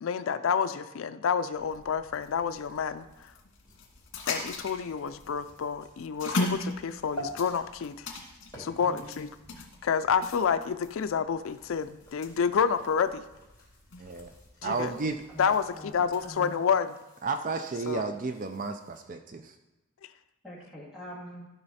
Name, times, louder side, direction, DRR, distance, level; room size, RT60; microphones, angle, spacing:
voice 1, 0.0-3.0 4.3-8.1 8.6-9.3 9.8-13.2 14.6-14.9 15.4-17.0 17.9-18.1, left 6 dB, 80° left, 11 dB, 0.4 m, -29 dB
sound 1, 1.5-16.4, left 2 dB, 65° left, 1.8 m, -40 dB
sound 2, 2.2-10.6 11.2-19.0, equal, 15° left, 3.5 m, -50 dB
voice 2, 8.8-9.2 14.7-14.8 15.3-15.9 16.2-16.5 20.4-21.5, equal, ahead, -5 dB, 2.2 m, -44 dB
voice 3, 14.0-14.3 14.6-15.2 17.2-19.5, right 4 dB, 40° right, 7 dB, 0.4 m, -32 dB
13.0 x 5.6 x 4.2 m, 1.0 s
head